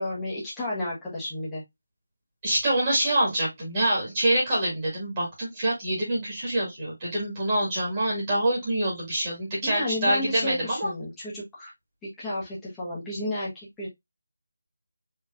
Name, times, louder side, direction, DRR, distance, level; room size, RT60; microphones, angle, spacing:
voice 1, 0.0-1.6 9.6-11.7 12.2-13.9, left 1 dB, 5° left, 1.2 m, -32 dB
voice 2, 2.4-10.9, right 1 dB, 20° right, 2.0 m, -26 dB
4.7 x 3.1 x 2.5 m
figure-of-eight pair, 175°, 0 cm